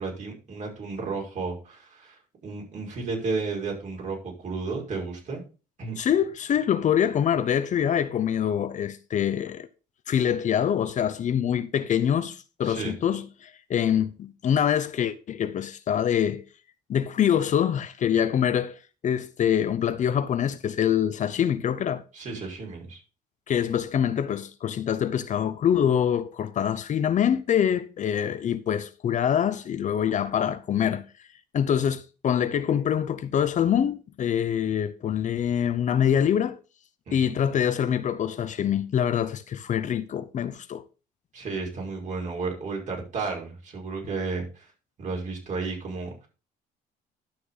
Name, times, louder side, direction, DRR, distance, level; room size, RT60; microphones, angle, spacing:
voice 1, 0.0-5.4 5.8-5.9 12.6-12.9 22.1-23.0 37.1-37.3 41.3-44.7 45.0-46.3, right 4 dB, 45° right, 5.4 m, -33 dB
voice 2, 6.0-9.7 10.1-16.4 16.9-22.0 23.5-31.0 31.5-36.6 37.1-40.8, left 9 dB, 45° left, 0.8 m, -25 dB
11.5 x 6.6 x 4.0 m
cardioid pair, 110°, 17 cm